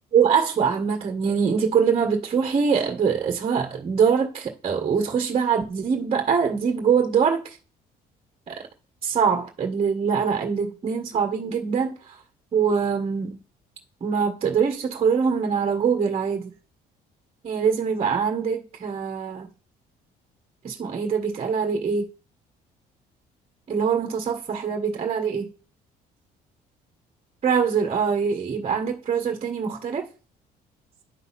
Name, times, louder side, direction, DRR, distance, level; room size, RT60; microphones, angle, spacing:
voice 1, 0.1-7.6 8.5-8.6 9.0-12.2 12.5-13.4 14.0-16.5 17.4-19.5 20.6-22.1 23.7-25.5 27.4-30.0, right 6 dB, 35° right, 1.6 m, -23 dB
11.0 x 4.0 x 5.8 m
cardioid pair, 110°, 17 cm